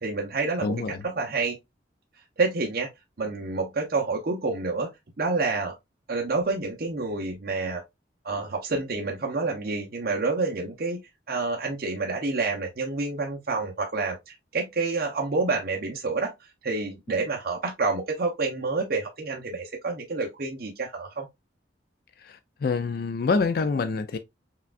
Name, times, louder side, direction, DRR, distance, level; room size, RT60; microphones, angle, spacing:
voice 1, 0.0-0.8 1.0-1.6 2.4-2.9 3.2-4.9 5.2-5.7 6.1-7.8 8.2-11.0 11.3-16.3 16.6-21.3, right 3 dB, 50° right, 0.7 m, -28 dB
voice 2, 0.6-1.0 22.2-24.2, left 4 dB, 55° left, 0.4 m, -26 dB
5.7 x 2.4 x 2.4 m
head